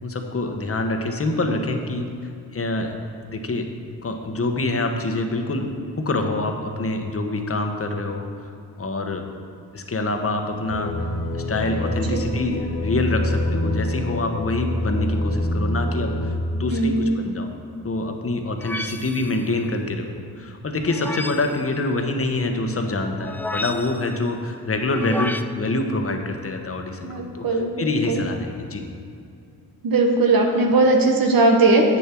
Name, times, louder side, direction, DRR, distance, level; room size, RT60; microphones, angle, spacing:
voice 1, 0.0-2.9 3.3-3.7 4.0-8.3 8.8-9.2 9.7-11.0 11.3-17.5 17.8-20.1 20.3-28.8, left 2 dB, 35° left, 5 dB, 1.1 m, -26 dB
sound 1, 10.7-16.3, left 1 dB, 70° left, 1.1 m, -26 dB
voice 2, 16.7-17.2 27.0-28.2 29.8-32.0, right 2 dB, 65° right, 2 dB, 1.1 m, -19 dB
sound 2, 18.6-19.4 20.8-21.6 23.2-24.1 24.9-25.4, left 1 dB, 5° left, 0.3 m, -31 dB
8.3 x 6.9 x 4.5 m, 2.5 s
supercardioid pair, 50°, 38 cm